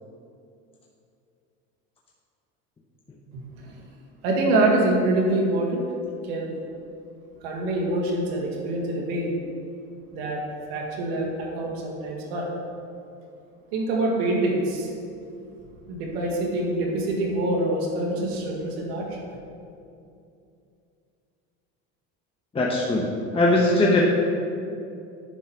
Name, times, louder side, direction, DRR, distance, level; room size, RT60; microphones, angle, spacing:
voice 1, 3.3-3.8 4.2-5.8 6.2-6.5 7.4-9.3 10.1-10.4 10.7-12.5 13.7-14.9 15.9-19.2, right 2 dB, 90° right, -1 dB, 1.8 m, -25 dB
voice 2, 22.5-23.1 23.3-24.0, left 2 dB, 20° left, -3 dB, 1.0 m, -20 dB
10.0 x 4.2 x 5.8 m, 2.5 s
supercardioid pair, 115°, 30 cm